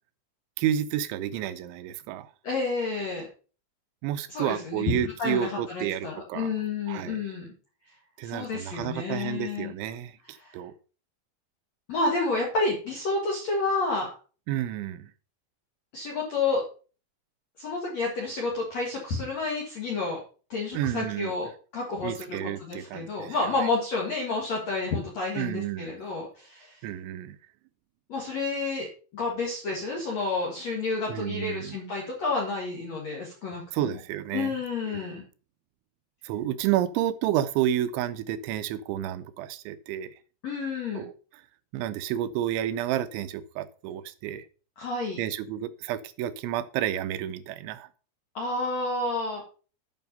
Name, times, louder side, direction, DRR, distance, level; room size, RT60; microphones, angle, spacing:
voice 1, 0.6-2.3 4.0-6.5 6.9-7.2 8.2-10.7 14.5-15.1 20.7-21.3 22.0-23.4 23.6-23.7 25.4-25.9 26.8-27.4 31.1-31.8 33.7-34.5 34.9-35.1 36.2-40.1 40.9-41.1 41.7-44.5 45.2-47.9, right 11 dB, 85° right, 13 dB, 2.8 m, -30 dB
voice 2, 2.4-3.3 4.3-7.5 8.2-9.7 10.4-10.6 11.9-14.1 15.9-16.6 17.6-20.2 20.5-21.5 21.7-26.8 28.1-28.9 29.1-33.9 34.3-35.2 40.4-41.0 44.8-45.2 48.3-49.4, left 3 dB, 65° left, -1 dB, 1.7 m, -30 dB
9.2 x 5.8 x 5.3 m, 0.38 s
omnidirectional pair, 5.5 m